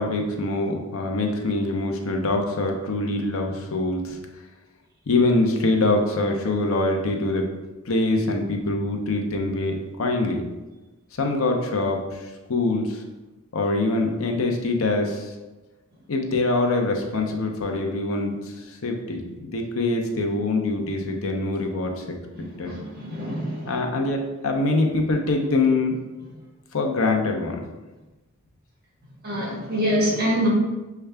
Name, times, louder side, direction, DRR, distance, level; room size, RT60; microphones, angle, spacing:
voice 1, 0.0-4.2 5.1-7.5 7.8-10.4 11.2-13.0 13.5-15.3 16.1-22.1 22.6-22.7 23.7-25.9 26.7-27.6, left 2 dB, 70° left, 3 dB, 0.6 m, -24 dB
voice 2, 22.3-23.7 29.2-30.5, equal, 45° right, -3 dB, 1.4 m, -25 dB
6.5 x 2.3 x 3.3 m, 1.1 s
head